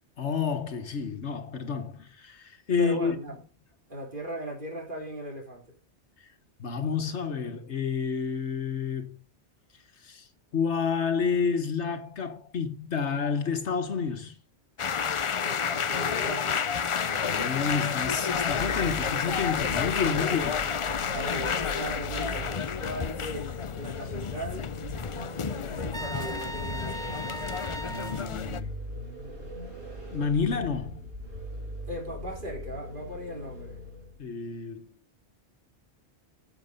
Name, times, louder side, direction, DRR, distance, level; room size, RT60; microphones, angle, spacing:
voice 1, 0.2-3.1 6.6-9.2 10.0-10.3 10.5-14.4 17.1-20.6 27.8-28.7 30.1-31.1 34.2-34.9, left 6 dB, 75° left, 1.6 m, -30 dB
voice 2, 2.8-3.4 3.9-5.8 15.4-16.8 19.9-20.5 21.1-24.7 25.7-27.2 31.8-33.8, right 1 dB, 45° right, 3.6 m, -38 dB
sound 1, 14.8-28.6, left 7 dB, 50° left, 0.3 m, -30 dB
Vehicle, 18.3-34.2, equal, 70° right, 6.5 m, -40 dB
Trumpet, 25.9-28.2, right 1 dB, 20° right, 0.9 m, -38 dB
9.9 x 7.9 x 5.2 m
omnidirectional pair, 1.2 m